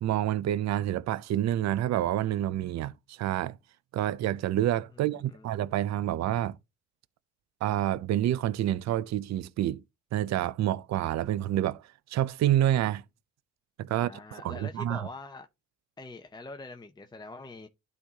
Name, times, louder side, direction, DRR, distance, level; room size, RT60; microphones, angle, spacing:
voice 1, 0.0-3.6 3.9-6.6 7.6-9.8 10.1-11.8 12.1-13.0 13.8-15.1, right 12 dB, 60° right, 0.5 m, -28 dB
voice 2, 4.9-5.5 13.9-15.5 16.0-17.7, left 2 dB, 15° left, 0.7 m, -44 dB
12.0 x 4.1 x 2.8 m
cardioid pair, 90°, 30 cm